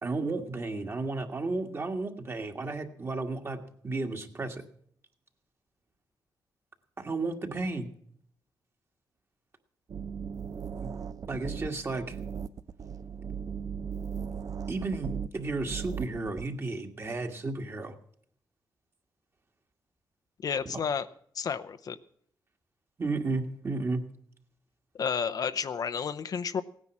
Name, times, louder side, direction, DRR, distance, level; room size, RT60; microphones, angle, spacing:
voice 1, 0.0-4.6 7.0-7.9 10.8-10.9 11.3-12.2 14.7-17.9 20.7-20.8 23.0-24.0, right 3 dB, 35° right, 4 dB, 1.7 m, -33 dB
sound 1, 9.9-16.5, right 7 dB, 50° right, 0.6 m, -37 dB
voice 2, 20.4-21.1 21.3-22.0 24.9-26.6, left 6 dB, 55° left, 11 dB, 0.7 m, -31 dB
17.0 x 9.7 x 6.1 m, 0.63 s
cardioid pair, 110°, 8 cm